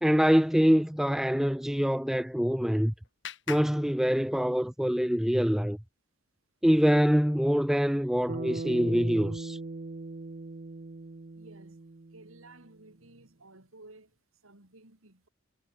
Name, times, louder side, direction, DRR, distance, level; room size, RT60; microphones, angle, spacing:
voice 1, 0.0-2.9 3.5-5.8 6.6-9.6, equal, ahead, 0.4 m, -25 dB
Clapping, 2.1-4.8, left 8 dB, 60° left, 2.4 m, -46 dB
Bass guitar, 8.3-12.7, right 3 dB, 45° right, 0.6 m, -39 dB
voice 2, 11.4-11.8 12.1-14.1 14.4-15.3, right 2 dB, 80° right, 4.0 m, -54 dB
head